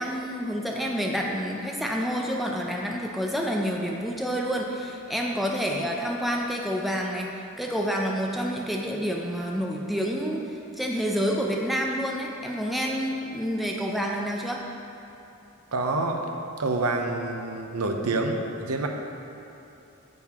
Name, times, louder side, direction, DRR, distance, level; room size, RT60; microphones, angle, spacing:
voice 1, 0.0-14.6, equal, ahead, -1 dB, 0.5 m, -28 dB
voice 2, 15.7-16.3 16.6-18.9, right 2 dB, 85° right, 3 dB, 0.8 m, -27 dB
9.2 x 7.6 x 3.6 m, 2.9 s
head